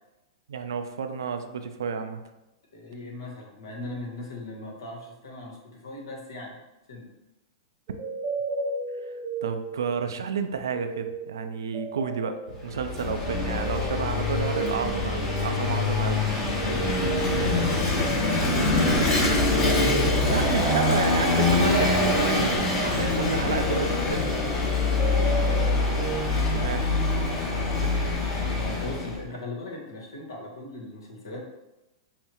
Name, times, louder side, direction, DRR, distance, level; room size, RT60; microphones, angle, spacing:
voice 1, 0.5-2.2 9.0-16.2 20.3-24.3 26.5-27.4 27.8-27.9, right 6 dB, 75° right, 7 dB, 0.4 m, -31 dB
voice 2, 2.7-6.6 6.9-7.1 16.6-20.6 24.7-25.2 27.9-31.4, left 2 dB, 80° left, 0 dB, 1.1 m, -39 dB
sound 1, 7.9-10.2 10.5-26.2, right 5 dB, 30° right, 0.6 m, -34 dB
Vehicle / Engine, 12.6-29.2, left 3 dB, 40° left, 1.1 m, -24 dB
5.5 x 2.1 x 2.9 m, 0.98 s
hypercardioid pair, 110°, 2 cm